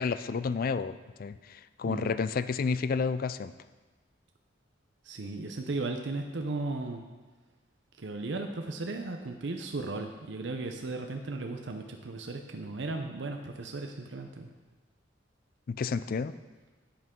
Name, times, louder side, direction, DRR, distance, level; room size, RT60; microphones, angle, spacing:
voice 1, 0.0-3.5 15.7-16.3, left 5 dB, 50° left, 14 dB, 0.4 m, -31 dB
voice 2, 5.0-7.0 8.0-14.5, right 3 dB, 70° right, 4 dB, 0.7 m, -36 dB
11.5 x 8.1 x 3.7 m, 1.3 s
head